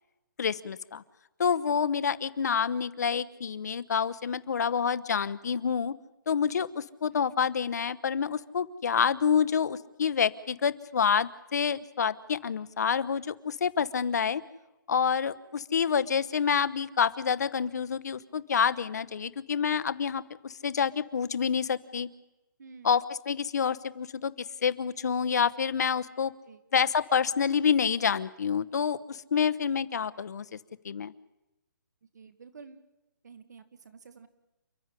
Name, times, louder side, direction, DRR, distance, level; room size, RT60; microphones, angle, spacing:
voice 1, 0.4-1.0 1.4-5.9 6.3-14.4 14.9-22.1 22.8-24.3 24.6-26.3 26.7-30.4 30.8-31.1, left 7 dB, 55° left, 15 dB, 1.0 m, -28 dB
voice 2, 32.1-32.9 33.2-34.3, right 5 dB, 55° right, 11 dB, 1.8 m, -50 dB
29.0 x 13.0 x 9.8 m, 1.0 s
hypercardioid pair, 170°, 11 cm